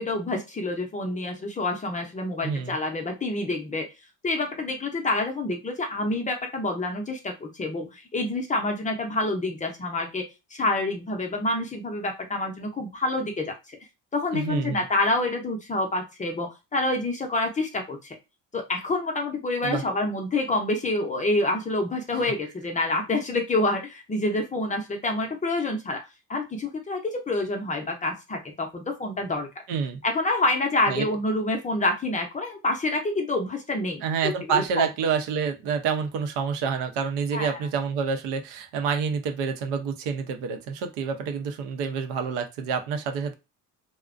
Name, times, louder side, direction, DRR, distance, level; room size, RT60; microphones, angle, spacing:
voice 1, 0.0-3.9 4.2-13.8 14.1-18.2 18.5-26.0 26.3-29.5 30.0-34.9 37.3-37.6, left 2 dB, 20° left, 2 dB, 0.5 m, -27 dB
voice 2, 2.4-2.8 14.3-14.8 19.6-19.8 29.7-30.0 30.9-31.1 34.0-43.3, right 6 dB, 80° right, 5 dB, 0.7 m, -28 dB
2.4 x 2.1 x 2.4 m, 0.25 s
cardioid pair, 110°, 40 cm